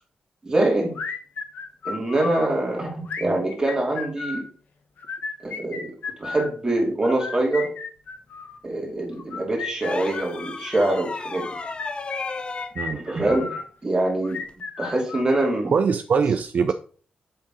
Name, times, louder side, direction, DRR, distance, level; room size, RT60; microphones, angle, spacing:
voice 1, 0.4-1.0 1.8-4.5 5.4-5.9 6.2-7.7 8.6-11.5 12.9-14.4 14.8-15.7, right 2 dB, 20° right, -1 dB, 2.6 m, -24 dB
sound 1, 0.9-2.5 3.0-4.5 5.0-6.5 7.0-8.6 9.2-10.6 11.3-13.7 14.2-15.7, left 5 dB, 75° left, 0.9 m, -34 dB
sound 2, 9.8-12.8 14.4-14.6, left 3 dB, 35° left, 0.5 m, -34 dB
voice 2, 12.8-13.3 15.7-16.7, right 6 dB, 60° right, 9 dB, 0.4 m, -23 dB
7.9 x 3.8 x 3.8 m, 0.43 s
cardioid pair, 80°, 3 cm